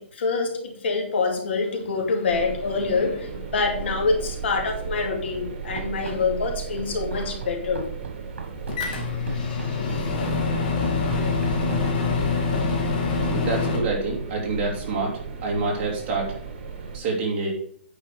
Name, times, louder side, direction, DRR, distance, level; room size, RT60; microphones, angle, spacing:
voice 1, 0.0-7.9, left 4 dB, 70° left, 2 dB, 2.6 m, -26 dB
sound 1, 2.3-17.0, right 6 dB, 55° right, 2.3 m, -35 dB
Run, 5.8-12.4, right 5 dB, 80° right, 1.5 m, -38 dB
Microwave oven, 8.7-13.8, left 4 dB, 45° left, 2.2 m, -25 dB
voice 2, 13.3-16.4 16.9-17.5, right 3 dB, 25° right, -1 dB, 2.6 m, -27 dB
9.2 x 5.4 x 5.0 m, 0.64 s
hypercardioid pair, 160°, 6 cm